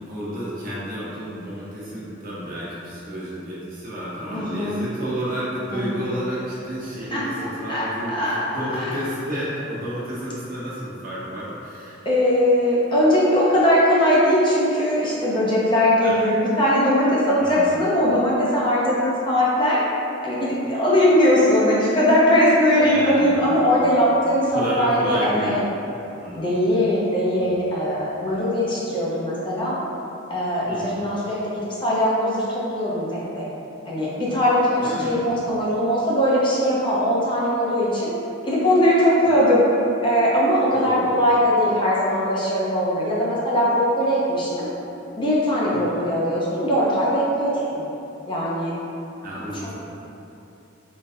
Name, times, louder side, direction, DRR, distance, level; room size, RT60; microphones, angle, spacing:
voice 1, 0.0-12.0 16.0-16.2 17.4-17.7 22.8-23.9 24.5-25.6 26.2-26.4 27.3-27.6 28.2-28.4 30.7-31.0 34.8-35.6 40.7-41.2 45.7-45.9 49.2-49.7, equal, 45° right, -8 dB, 1.0 m, -31 dB
voice 2, 4.3-4.8 5.7-6.0 7.1-9.0 12.0-19.8 20.2-25.6 26.4-29.8 30.3-33.4 33.9-38.1 38.4-39.7 40.0-44.7 45.2-47.8 48.3-48.7 49.6-49.7, equal, 25° left, -7 dB, 0.6 m, -20 dB
3.9 x 3.8 x 2.6 m, 2.9 s
head